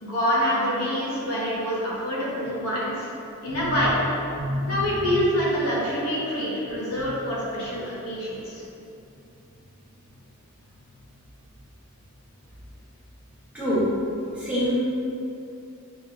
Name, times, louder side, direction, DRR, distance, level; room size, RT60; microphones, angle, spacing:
voice 1, 0.0-3.1 3.4-4.0 4.7-8.6, equal, 80° left, -7 dB, 1.1 m, -26 dB
voice 2, 4.4-5.1 13.5-13.9 14.3-14.8, equal, 5° right, -11 dB, 1.1 m, -26 dB
6.2 x 2.7 x 2.4 m, 2.7 s
head